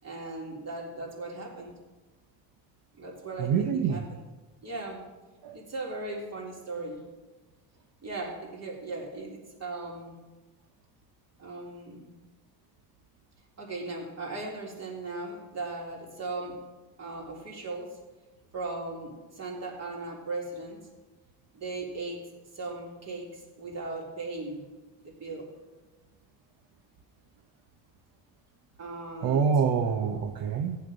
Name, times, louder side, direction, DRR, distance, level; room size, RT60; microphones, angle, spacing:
voice 1, 0.0-1.7 2.9-4.2 4.6-5.1 5.5-7.0 8.0-10.2 11.4-12.1 13.6-16.6 17.0-18.0 18.5-20.9 21.5-22.3 22.5-24.6 25.0-25.5 28.8-29.6, right 2 dB, 40° right, -1 dB, 3.7 m, -38 dB
voice 2, 3.4-4.0 5.4-5.6 29.2-30.8, right 6 dB, 65° right, 5 dB, 1.0 m, -26 dB
15.0 x 9.9 x 5.2 m, 1.2 s
cardioid pair, 110°, 38 cm